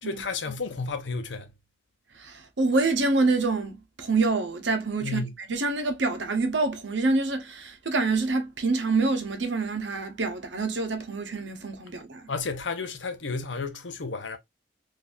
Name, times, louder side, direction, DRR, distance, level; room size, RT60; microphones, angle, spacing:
voice 1, 0.0-1.5 5.0-5.3 12.3-14.4, left 4 dB, 85° left, 0.8 m, -32 dB
voice 2, 2.1-5.2 5.5-12.3, right 3 dB, 75° right, 0.9 m, -26 dB
4.0 x 2.6 x 2.5 m
head